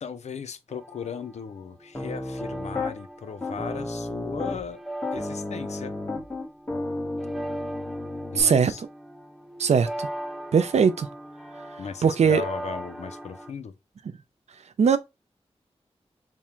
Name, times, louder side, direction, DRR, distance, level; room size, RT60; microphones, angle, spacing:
voice 1, 0.0-4.8 5.1-5.9 8.3-8.8 11.8-13.7, left 6 dB, 85° left, 0.4 m, -36 dB
sound 1, 0.7-13.5, right 1 dB, ahead, 0.4 m, -40 dB
Piano, 1.9-2.9 3.4-4.7 5.0-8.4, left 2 dB, 20° left, 1.1 m, -32 dB
voice 2, 8.3-8.7 9.6-10.1 10.5-11.1 12.0-12.4 14.8-15.0, right 6 dB, 80° right, 0.4 m, -20 dB
3.6 x 2.1 x 4.3 m
wide cardioid pair, 85°, 11 cm